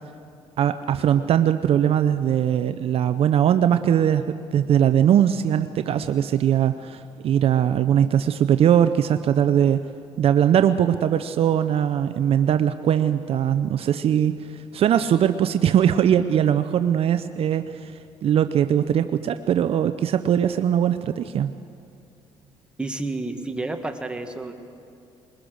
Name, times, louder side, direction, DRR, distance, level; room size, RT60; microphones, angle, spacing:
voice 1, 0.6-9.9 10.2-17.9 18.2-21.6, right 9 dB, 55° right, 10 dB, 0.6 m, -20 dB
voice 2, 22.8-24.5, right 2 dB, 10° right, 5 dB, 1.7 m, -30 dB
21.5 x 20.5 x 6.4 m, 2.5 s
cardioid pair, 95°, 12 cm